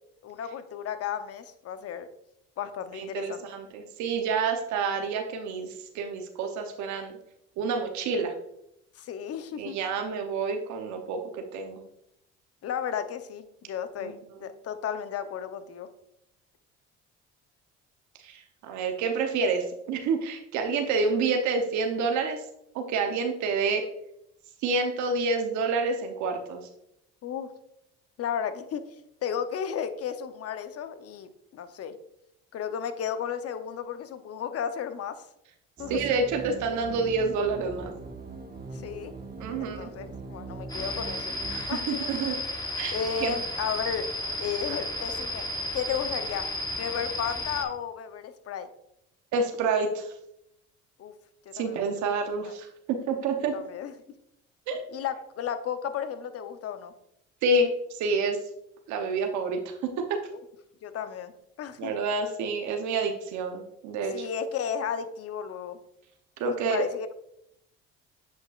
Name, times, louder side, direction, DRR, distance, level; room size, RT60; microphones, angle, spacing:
voice 1, 0.2-2.1 2.6-3.4 9.0-9.8 12.6-15.9 27.2-27.5 28.2-28.8 29.2-32.0 32.5-35.3 35.8-36.2 38.7-39.1 39.6-41.3 41.7-42.0 42.9-44.1 44.4-45.5 45.7-46.5 46.8-48.7 51.0-51.1 51.5-52.0 52.4-52.6 53.4-53.9 54.9-56.9 60.3-60.4 60.8-61.3 61.6-61.9 64.0-65.8 66.7-67.1, left 8 dB, 55° left, 10 dB, 0.7 m, -34 dB
voice 2, 2.9-7.1 7.6-8.3 9.6-11.8 14.0-14.1 18.2-22.4 22.7-23.8 24.6-26.6 35.9-37.9 39.4-39.9 41.5-42.4 42.8-43.3 49.3-50.1 51.5-53.5 54.7-54.8 57.4-58.4 58.9-59.7 61.8-64.3 66.4-66.9, right 4 dB, 75° right, 5 dB, 0.8 m, -28 dB
sound 1, 35.8-41.6, right 3 dB, 30° right, 1.2 m, -41 dB
sound 2, 40.7-47.6, left 1 dB, 15° left, 1.2 m, -33 dB
7.8 x 5.1 x 2.4 m, 0.79 s
supercardioid pair, 75°, 29 cm